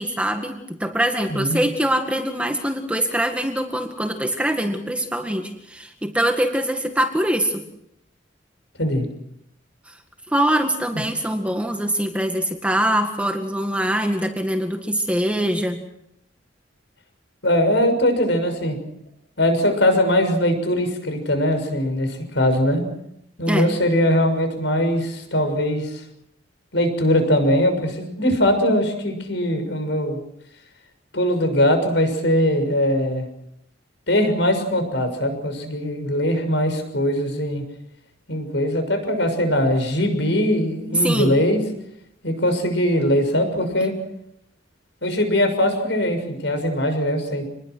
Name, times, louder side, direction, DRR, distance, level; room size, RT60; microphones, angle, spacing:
voice 1, 0.0-7.6 10.3-15.8 23.5-23.7 41.0-41.3, right 1 dB, 5° right, 4 dB, 1.9 m, -23 dB
voice 2, 1.3-1.6 8.8-9.0 10.9-11.0 17.4-18.8 19.4-22.8 23.4-26.0 26.7-30.2 31.1-33.2 34.1-37.6 38.3-41.6 42.2-43.9 45.0-47.4, left 1 dB, 70° left, 7 dB, 6.5 m, -21 dB
27.0 x 21.5 x 6.3 m, 0.78 s
head